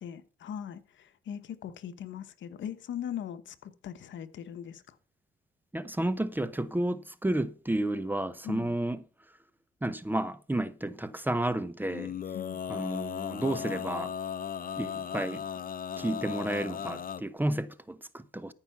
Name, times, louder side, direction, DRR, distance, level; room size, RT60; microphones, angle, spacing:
voice 1, 0.0-4.8 8.4-8.7 12.3-12.6, left 9 dB, 70° left, 1.1 m, -40 dB
voice 2, 5.7-9.0 9.8-12.1 12.7-14.1 14.8-15.4 16.0-18.5, right 1 dB, 10° right, 0.8 m, -31 dB
Male singing, 11.9-17.2, left 8 dB, 45° left, 0.9 m, -36 dB
14.0 x 5.7 x 5.9 m
cardioid pair, 90°, 20 cm